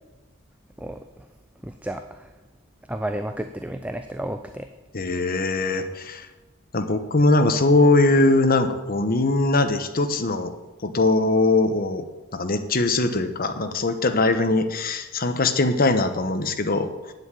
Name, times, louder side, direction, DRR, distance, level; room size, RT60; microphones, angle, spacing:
voice 1, 0.8-1.3 1.6-2.3 2.9-4.7, right 1 dB, 5° right, 7 dB, 0.5 m, -32 dB
voice 2, 4.9-6.3 6.7-10.5 10.8-12.0 12.3-17.1, left 2 dB, 45° left, 8 dB, 1.0 m, -21 dB
8.8 x 7.8 x 9.0 m, 1.1 s
head